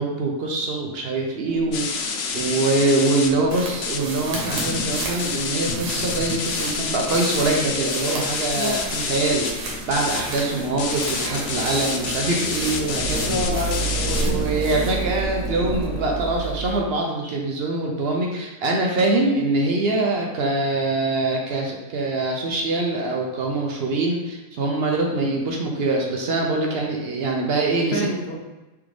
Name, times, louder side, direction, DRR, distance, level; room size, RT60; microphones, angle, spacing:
voice 1, 0.0-13.3 14.0-28.1, right 2 dB, 65° right, 0 dB, 0.6 m, -24 dB
sound 1, 1.4-16.3, left 1 dB, 30° left, 0.9 m, -34 dB
sound 2, 1.7-3.3 3.6-4.0 4.3-9.5 9.9-10.2 10.8-14.2, left 5 dB, 90° left, 0.5 m, -28 dB
sound 3, 3.5-16.8, right 4 dB, 80° right, 1.5 m, -32 dB
voice 2, 13.2-14.4 27.9-28.4, left 1 dB, 70° left, -1 dB, 1.2 m, -27 dB
3.8 x 3.4 x 3.1 m, 1.1 s
omnidirectional pair, 1.7 m